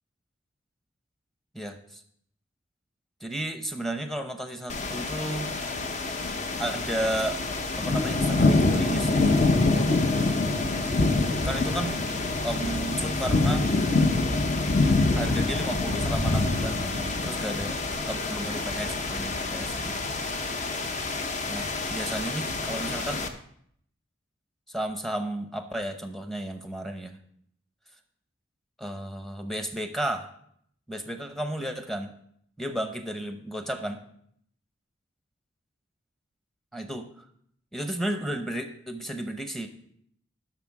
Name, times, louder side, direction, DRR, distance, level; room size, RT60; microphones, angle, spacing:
voice 1, 1.5-2.0 3.2-5.5 6.6-7.4 7.7-9.3 11.4-12.0 12.4-13.7 15.1-17.8 18.1-19.9 21.5-23.3 24.7-27.2 28.8-30.3 30.9-32.1 32.6-34.0 36.7-37.2 37.7-39.7, right 1 dB, ahead, 6 dB, 0.8 m, -33 dB
sound 1, 4.7-23.3, left 2 dB, 40° left, 0.8 m, -26 dB
11.5 x 6.0 x 4.8 m, 0.68 s
head